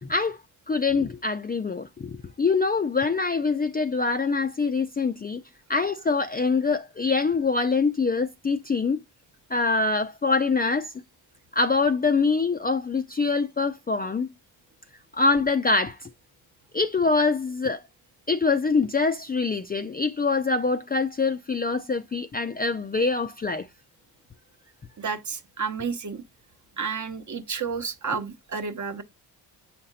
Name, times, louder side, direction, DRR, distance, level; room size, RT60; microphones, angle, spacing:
voice 1, 0.0-0.4 0.7-5.4 5.7-9.0 9.5-10.9 11.5-14.3 15.1-16.1 16.7-17.8 18.3-23.7, left 4 dB, 20° left, 0.4 m, -24 dB
voice 2, 25.0-26.2 26.8-29.0, right 5 dB, 40° right, 0.9 m, -31 dB
7.2 x 4.3 x 3.8 m
cardioid pair, 70°, 44 cm